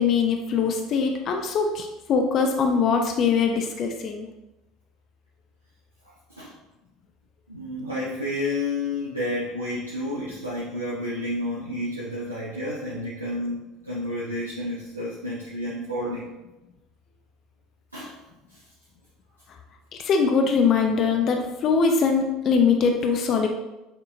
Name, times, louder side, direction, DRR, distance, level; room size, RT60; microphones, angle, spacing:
voice 1, 0.0-4.3 20.0-23.5, left 5 dB, 45° left, 3 dB, 0.5 m, -22 dB
voice 2, 6.0-6.5 7.5-16.3 17.9-18.1 18.5-18.6, left 1 dB, 90° right, -6 dB, 0.6 m, -30 dB
6.9 x 2.8 x 2.5 m, 0.99 s
figure-of-eight pair, 65°, 0 cm